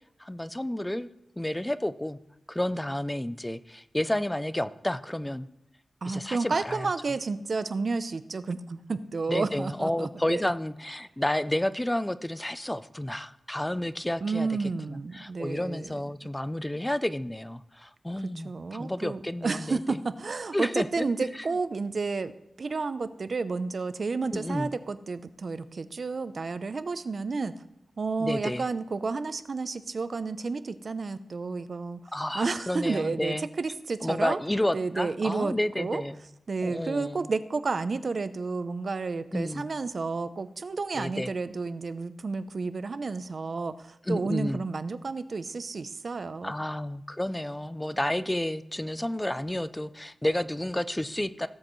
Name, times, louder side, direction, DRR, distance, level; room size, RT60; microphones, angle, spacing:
voice 1, 0.2-1.1 1.4-2.2 2.5-5.5 6.1-6.9 9.3-14.5 14.9-20.0 20.5-21.1 24.3-24.7 28.2-28.6 32.1-33.5 34.0-36.2 36.6-37.3 39.3-39.7 41.0-41.3 44.1-44.6 46.4-51.5, left 1 dB, 10° left, 13 dB, 0.4 m, -31 dB
voice 2, 6.0-10.5 14.2-16.0 18.4-22.3 22.6-27.5 28.0-32.0 32.3-34.4 34.7-36.0 36.5-46.5, right 4 dB, 55° right, 12 dB, 0.6 m, -31 dB
17.5 x 7.5 x 3.1 m, 0.83 s
wide cardioid pair, 115°, 0 cm